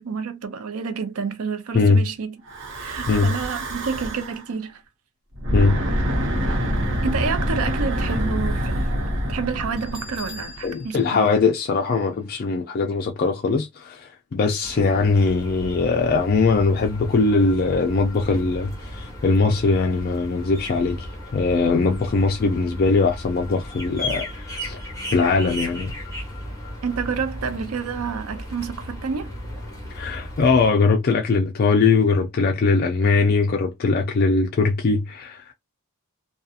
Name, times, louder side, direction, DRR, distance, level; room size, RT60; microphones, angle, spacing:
voice 1, 0.0-2.4 2.7-4.8 7.0-8.9 9.3-11.3 26.8-29.3, right 5 dB, 80° right, 0.5 m, -29 dB
Breathing / Wind, 2.5-4.4 5.3-10.7, equal, 55° right, 0.9 m, -26 dB
Bell, 9.8-12.5, left 5 dB, 25° right, 1.2 m, -44 dB
voice 2, 10.6-24.3 24.5-24.8 25.1-25.9 29.9-35.5, left 4 dB, 45° left, 0.4 m, -21 dB
sound 1, 14.6-30.7, left 1 dB, 15° left, 1.2 m, -35 dB
2.7 x 2.2 x 2.3 m
head